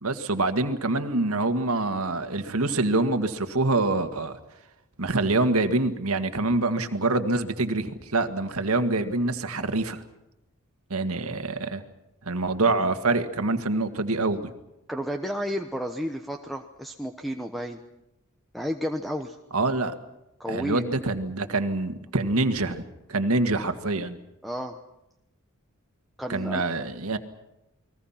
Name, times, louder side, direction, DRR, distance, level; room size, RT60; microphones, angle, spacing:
voice 1, 0.0-4.4 5.0-10.0 10.9-11.8 12.3-14.5 19.5-20.0 20.5-22.8 23.1-24.2 26.3-27.2, right 2 dB, 80° right, 8 dB, 1.9 m, -25 dB
voice 2, 14.9-17.8 18.5-19.3 20.4-20.8 24.4-24.8 26.2-26.6, equal, ahead, 5 dB, 1.1 m, -31 dB
30.0 x 21.0 x 5.8 m, 0.89 s
head